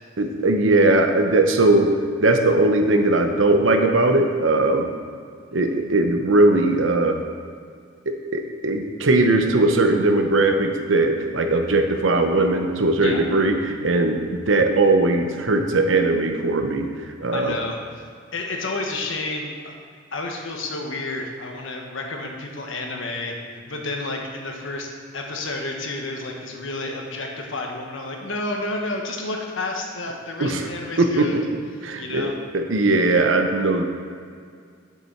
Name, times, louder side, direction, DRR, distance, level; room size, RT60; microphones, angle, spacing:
voice 1, 0.2-1.9 2.2-4.9 5.5-7.2 8.1-16.9 17.2-17.6 30.4-30.6 31.0-31.4 31.8-32.3 32.5-33.8, right 2 dB, 80° right, 5 dB, 0.8 m, -19 dB
voice 2, 17.3-18.0 18.3-19.7 20.1-23.3 23.7-24.9 25.1-31.4 32.0-32.3, left 2 dB, 80° left, 1 dB, 1.2 m, -30 dB
7.5 x 6.6 x 4.6 m, 2.1 s
head